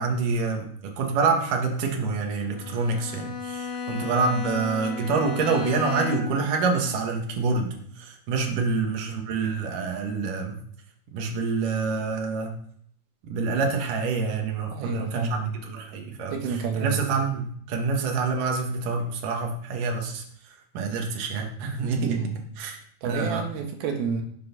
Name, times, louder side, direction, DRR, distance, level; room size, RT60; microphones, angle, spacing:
voice 1, 0.0-10.6 11.1-12.6 13.2-16.3 16.8-20.2 20.7-22.2 22.6-22.8 23.0-23.4, right 4 dB, 65° right, 2 dB, 3.1 m, -27 dB
Bowed string instrument, 2.5-6.5, left 5 dB, 70° left, 3.2 m, -33 dB
voice 2, 14.7-15.6 16.3-17.1 21.9-22.4 23.0-24.2, right 6 dB, 85° right, 3 dB, 3.3 m, -30 dB
13.5 x 6.5 x 6.0 m, 0.63 s
omnidirectional pair, 4.2 m